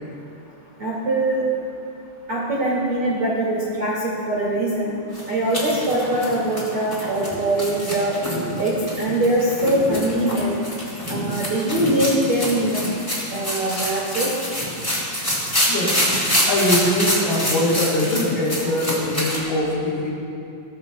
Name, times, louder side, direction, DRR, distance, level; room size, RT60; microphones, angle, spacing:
voice 1, 0.8-1.4 2.3-4.9 5.3-8.1 8.6-10.5 11.1-12.9 13.3-14.3, right 1 dB, 60° right, -6 dB, 1.4 m, -22 dB
sound 1, 5.1-19.4, equal, 10° left, 1.9 m, -26 dB
voice 2, 9.6-10.0 15.7-16.0 16.5-20.1, left 1 dB, 55° left, -5 dB, 4.5 m, -22 dB
20.0 x 14.0 x 2.2 m, 2.6 s
omnidirectional pair, 5.9 m